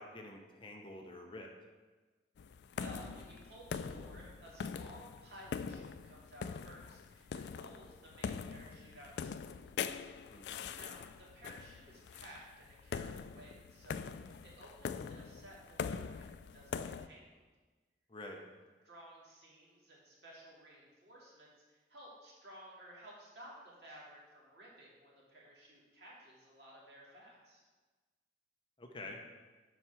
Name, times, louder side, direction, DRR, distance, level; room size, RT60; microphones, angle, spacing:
voice 1, 0.0-1.5 10.3-10.7 18.1-18.4 28.8-29.2, left 2 dB, 30° left, 2 dB, 0.8 m, -48 dB
sound 1, 2.4-17.1, left 6 dB, 75° left, 0.3 m, -43 dB
voice 2, 2.8-9.7 10.3-17.3 18.8-27.6, right 1 dB, 70° right, -5 dB, 2.3 m, -56 dB
7.5 x 4.6 x 6.1 m, 1.3 s
head